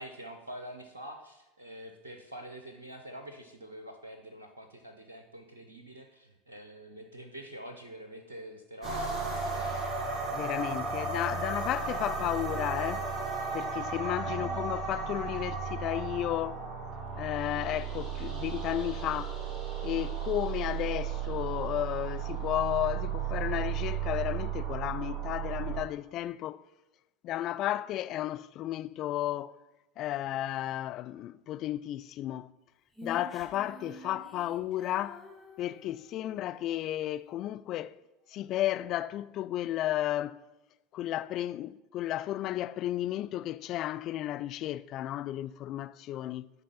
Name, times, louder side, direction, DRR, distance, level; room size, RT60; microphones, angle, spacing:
voice 1, 0.0-10.1 14.3-14.6, right 1 dB, 80° right, 0.7 m, -46 dB
sound 1, 8.8-25.8, right 5 dB, 25° right, 2.9 m, -34 dB
voice 2, 10.3-13.1 13.5-16.6 17.2-19.4 19.8-26.6 27.2-29.6 30.0-32.5 33.0-35.2 35.6-38.0 38.3-40.4 40.9-46.5, left 13 dB, 45° left, 0.3 m, -33 dB
Female singing, 32.9-36.5, left 1 dB, ahead, 1.4 m, -48 dB
10.5 x 4.2 x 5.5 m
figure-of-eight pair, 75°, 0 cm